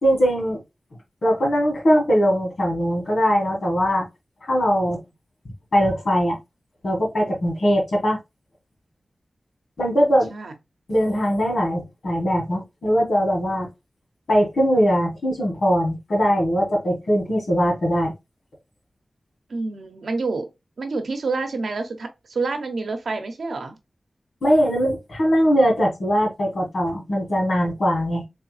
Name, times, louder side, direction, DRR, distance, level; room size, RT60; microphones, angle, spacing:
voice 1, 0.0-0.6 1.2-4.1 4.4-5.0 5.7-6.4 6.8-8.2 9.8-10.3 10.9-13.7 14.3-18.1 24.4-28.2, equal, 75° left, 1.7 m, -21 dB
voice 2, 19.5-20.5 20.8-23.8, right 3 dB, 90° right, 0.8 m, -28 dB
3.5 x 3.3 x 3.2 m
wide cardioid pair, 60°, 0 cm